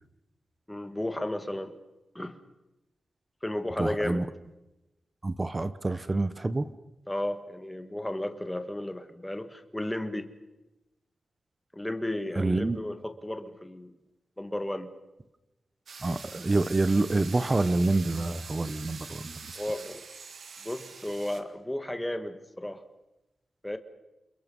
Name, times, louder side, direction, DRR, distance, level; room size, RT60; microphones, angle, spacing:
voice 1, 0.7-1.7 2.1-2.4 3.4-4.2 7.1-10.3 11.7-13.9 14.4-14.9 19.5-20.0 20.6-22.8 23.6-23.8, left 1 dB, 10° left, 8 dB, 1.6 m, -33 dB
voice 2, 3.8-4.3 5.2-6.7 12.3-12.8 16.0-19.4, right 2 dB, 20° right, 13 dB, 1.0 m, -27 dB
sound 1, 15.9-21.4, right 5 dB, 60° right, 2.1 m, -44 dB
28.5 x 28.5 x 5.5 m, 0.98 s
wide cardioid pair, 175°, 0 cm